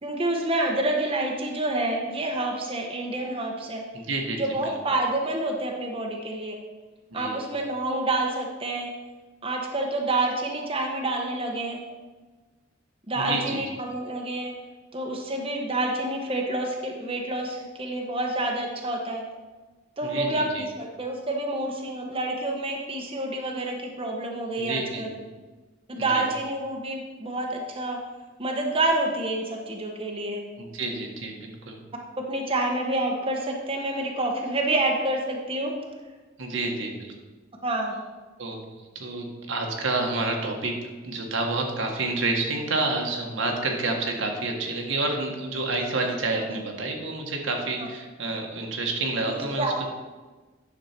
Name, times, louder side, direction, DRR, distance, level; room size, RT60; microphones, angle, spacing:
voice 1, 0.0-3.8 4.4-6.6 7.1-8.9 9.4-11.8 13.1-14.5 14.9-19.2 20.0-25.1 25.9-28.0 28.4-30.4 32.2-35.7 37.6-38.0 43.5-43.6 46.5-46.6 47.7-47.9 49.2-49.9, right 2 dB, 30° right, 0 dB, 1.0 m, -28 dB
voice 2, 3.9-4.4 7.1-7.4 13.2-13.6 20.0-20.6 24.6-25.3 26.0-26.2 30.6-31.8 36.4-37.1 38.4-38.6 38.9-40.7 41.0-49.9, right 2 dB, 80° right, 1 dB, 1.6 m, -29 dB
10.0 x 6.6 x 4.4 m, 1.3 s
head